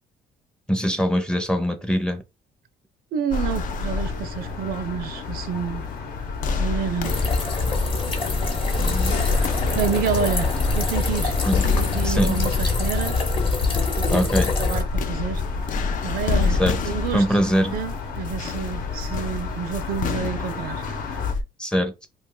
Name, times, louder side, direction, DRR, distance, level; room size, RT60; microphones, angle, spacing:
voice 1, 0.7-2.2 8.8-9.1 11.5-11.6 12.0-12.4 14.1-14.5 16.6-16.8 17.1-17.8 21.6-21.9, equal, 5° left, 0.6 m, -22 dB
voice 2, 3.1-5.9 6.5-7.2 9.7-11.4 11.8-13.2 14.0-15.4 16.0-17.4 17.7-20.8, right 7 dB, 60° right, 0.5 m, -29 dB
sound 1, 3.3-21.3, left 4 dB, 70° left, 1.0 m, -32 dB
sound 2, 3.3-21.4, left 4 dB, 50° left, 0.4 m, -29 dB
sound 3, 7.0-14.8, left 3 dB, 30° left, 0.9 m, -24 dB
2.4 x 2.3 x 3.7 m
cardioid pair, 110°, 17 cm